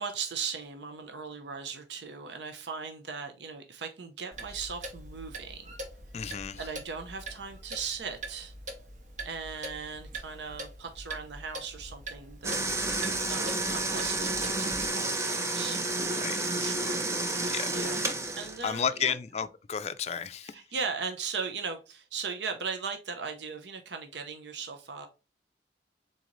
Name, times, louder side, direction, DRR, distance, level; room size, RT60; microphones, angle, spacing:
voice 1, 0.0-5.7 6.6-8.5 9.2-13.0 13.3-15.8 16.4-17.1 17.3-18.0 18.4-19.1 20.4-25.1, right 5 dB, 80° right, 0.7 m, -38 dB
Clock, 4.3-14.9, right 2 dB, 45° right, 0.9 m, -43 dB
voice 2, 6.1-6.6 16.2-16.7 17.5-17.7 18.6-20.5, left 7 dB, 35° left, 0.4 m, -32 dB
sound 1, 12.4-18.7, right 2 dB, 15° right, 0.5 m, -30 dB
3.9 x 3.8 x 3.0 m
head